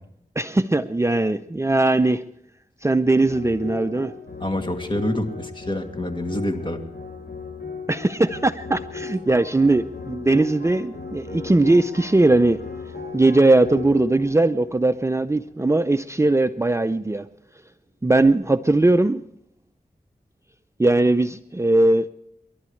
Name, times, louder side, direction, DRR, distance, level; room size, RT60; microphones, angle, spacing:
voice 1, 0.4-2.2 2.8-4.1 7.9-12.6 13.1-17.3 18.0-19.2 20.8-22.1, right 2 dB, 20° right, 10 dB, 0.6 m, -19 dB
sound 1, 3.3-15.7, left 4 dB, 90° left, 7.2 m, -37 dB
voice 2, 4.4-6.8, left 1 dB, 30° left, 4 dB, 2.5 m, -27 dB
29.0 x 12.0 x 3.2 m, 0.77 s
cardioid pair, 50°, 16 cm